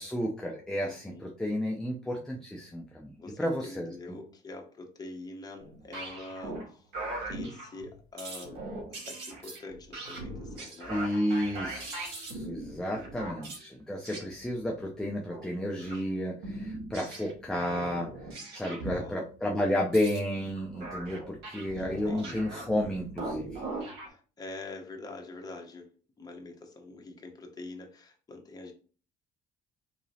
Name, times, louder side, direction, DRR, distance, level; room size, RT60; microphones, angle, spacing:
voice 1, 0.0-3.9 10.9-18.1 18.5-23.6, left 1 dB, 5° left, -1 dB, 0.6 m, -32 dB
voice 2, 0.8-1.2 3.2-6.9 7.2-10.9 12.9-13.1 18.6-19.2 19.7-19.8 21.7-22.8 24.0-25.9 26.2-28.7, left 2 dB, 25° left, 2 dB, 0.9 m, -45 dB
sound 1, 5.6-6.7 6.9-7.9 8.2-13.7 14.0-14.3 15.3-15.5 15.8-16.0 16.4-19.0 19.8-24.1, right 2 dB, 80° right, 1.7 m, -40 dB
4.0 x 2.9 x 2.7 m, 0.38 s
cardioid pair, 110°, 17 cm